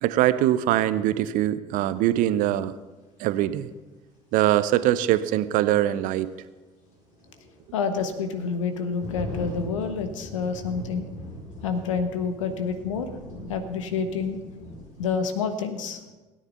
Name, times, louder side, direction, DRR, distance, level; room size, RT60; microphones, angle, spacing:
voice 1, 0.0-2.7 3.2-3.7 4.3-6.3, right 13 dB, 55° right, 14 dB, 0.7 m, -22 dB
sound 1, 2.1-2.2 4.6-4.7 5.2-5.3 6.8-15.1, equal, 50° left, 4.9 m, -40 dB
voice 2, 7.7-11.0 11.6-13.1 13.5-14.4 15.0-16.0, left 5 dB, 70° left, 8 dB, 1.3 m, -28 dB
16.5 x 9.5 x 5.6 m, 1.2 s
figure-of-eight pair, 55°, 17 cm